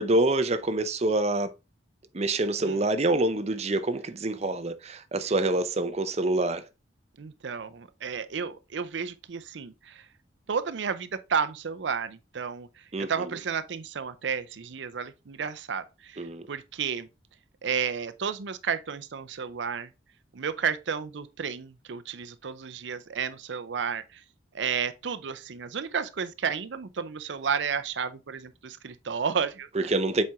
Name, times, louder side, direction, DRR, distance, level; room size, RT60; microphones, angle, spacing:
voice 1, 0.0-1.5 2.1-6.6 12.9-13.1 16.2-16.4 29.8-30.2, right 2 dB, 35° right, 0.6 m, -26 dB
voice 2, 7.2-10.1 10.5-17.1 17.6-19.9 20.3-24.2 24.5-29.9, right 6 dB, 75° right, 0.5 m, -32 dB
7.5 x 4.3 x 3.5 m
head